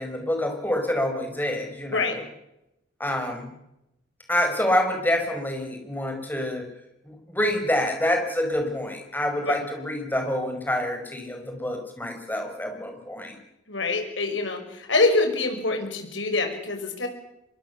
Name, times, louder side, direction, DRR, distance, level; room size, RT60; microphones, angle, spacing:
voice 1, 0.0-2.2 3.0-3.5 4.3-6.7 7.1-13.4, left 1 dB, 10° left, 4 dB, 5.2 m, -27 dB
voice 2, 13.7-17.1, left 3 dB, 80° left, 5 dB, 5.8 m, -25 dB
25.0 x 23.0 x 7.1 m, 0.87 s
head